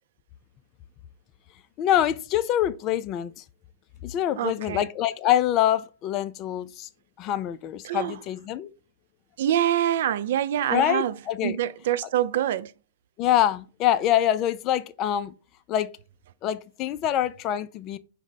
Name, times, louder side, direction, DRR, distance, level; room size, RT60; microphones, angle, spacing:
voice 1, 1.8-3.4 4.0-6.9 7.2-8.7 10.7-11.6 13.2-15.3 15.7-15.9 16.4-18.0, left 11 dB, 35° left, 0.3 m, -25 dB
voice 2, 4.4-4.9 7.8-8.1 9.4-11.1 11.4-12.7, right 11 dB, 60° right, 0.3 m, -25 dB
4.9 x 2.1 x 4.0 m
hypercardioid pair, 110°, 0 cm